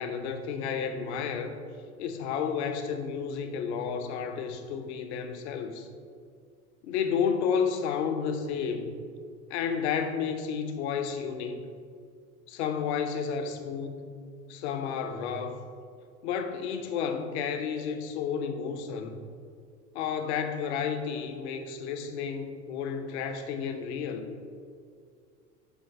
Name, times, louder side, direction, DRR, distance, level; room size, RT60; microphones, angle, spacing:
voice 1, 0.0-1.5 2.0-5.9 6.8-8.9 9.5-11.6 12.5-14.1 14.5-15.6 16.2-19.2 19.9-24.3, left 6 dB, 50° left, 7 dB, 0.8 m, -31 dB
7.0 x 4.6 x 4.5 m, 2.2 s
figure-of-eight pair, 80°, 45 cm